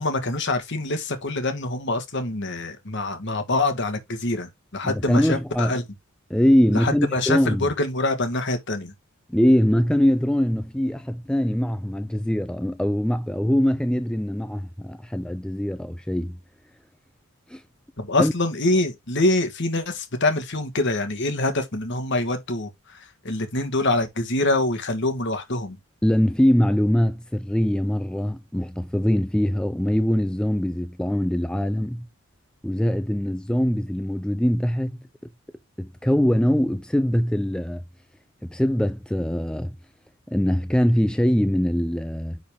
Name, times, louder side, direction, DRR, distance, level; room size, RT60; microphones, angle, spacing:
voice 1, 0.0-5.8 6.7-8.9 18.0-25.8, left 2 dB, 55° left, 1.6 m, -25 dB
voice 2, 4.8-5.8 6.3-7.7 9.3-16.4 17.5-17.6 18.2-18.3 26.0-32.1 32.6-34.9 35.8-37.8 38.4-39.7 40.3-42.4, equal, 5° left, 0.3 m, -22 dB
9.6 x 4.0 x 3.5 m
head